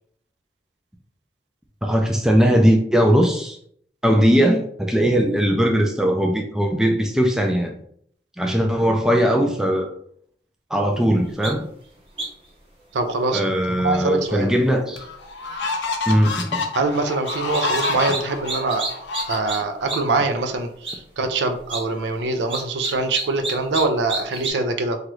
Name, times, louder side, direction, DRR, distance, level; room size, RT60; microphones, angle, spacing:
voice 1, 1.8-3.6 4.0-7.7 8.4-9.9 10.7-11.6 13.3-15.0 16.1-16.7, equal, 5° right, 0.3 m, -19 dB
sound 1, 11.4-11.5 12.2-12.5 17.2-18.2 18.5-19.6 19.9-20.0 20.3-20.4 20.8-20.9 21.6-21.8 22.5-23.8 24.1-24.5, right 3 dB, 30° right, 0.8 m, -28 dB
voice 2, 12.9-14.5 16.7-18.9 19.3-25.0, right 3 dB, 80° right, 0.4 m, -24 dB
sound 2, 14.3-14.4 15.0-19.9, left 3 dB, 85° left, 0.5 m, -28 dB
3.0 x 2.4 x 3.0 m
head